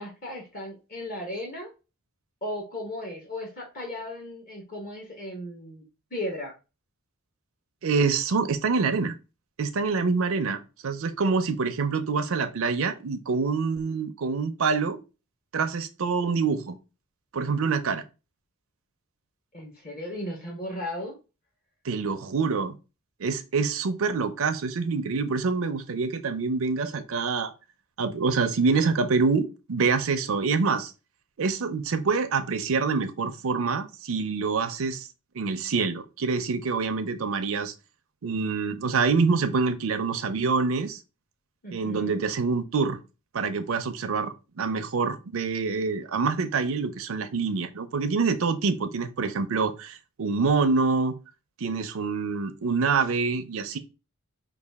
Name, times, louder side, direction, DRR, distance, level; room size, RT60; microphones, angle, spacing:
voice 1, 0.0-1.7 2.4-5.8 6.1-6.5 19.5-21.1 41.6-42.2, left 1 dB, 40° left, 1.0 m, -36 dB
voice 2, 7.8-9.1 9.6-15.0 15.5-16.8 17.3-18.0 21.8-22.8 23.2-27.5 28.0-30.9 31.4-35.1 35.3-37.7 38.2-41.0 41.7-43.0 43.3-51.2 51.6-53.8, right 4 dB, 70° right, 0.5 m, -26 dB
4.7 x 2.4 x 3.4 m
head